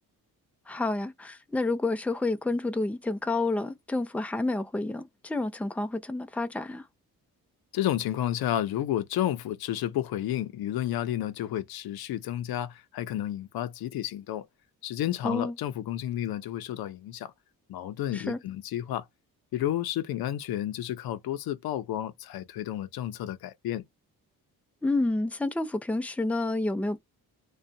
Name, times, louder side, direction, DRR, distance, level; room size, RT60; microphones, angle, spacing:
voice 1, 0.7-6.8 15.2-15.5 18.1-18.4 24.8-27.0, left 2 dB, 5° left, 0.5 m, -29 dB
voice 2, 7.7-14.4 14.8-17.3 17.7-19.0 19.5-23.8, left 12 dB, 75° left, 0.6 m, -31 dB
2.4 x 2.3 x 2.6 m
cardioid pair, 65°, 37 cm